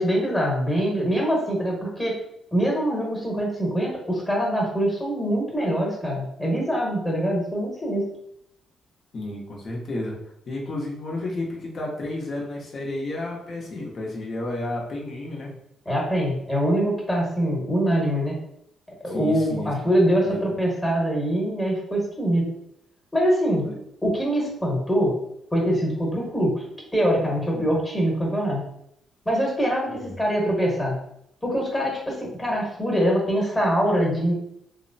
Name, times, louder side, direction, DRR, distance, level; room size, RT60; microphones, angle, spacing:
voice 1, 0.0-2.2 2.5-8.1 15.8-18.4 19.0-22.5 23.1-23.7 24.0-25.1 25.5-26.6 26.9-28.6 29.2-31.0 31.4-34.3, equal, 10° left, -2 dB, 1.1 m, -23 dB
voice 2, 9.1-10.1 10.5-15.5 19.0-19.7 20.2-20.4 23.6-23.8 27.5-27.7 29.9-30.1, left 2 dB, 50° left, -2 dB, 0.9 m, -32 dB
2.9 x 2.1 x 2.6 m, 0.76 s
cardioid pair, 90°, 0 cm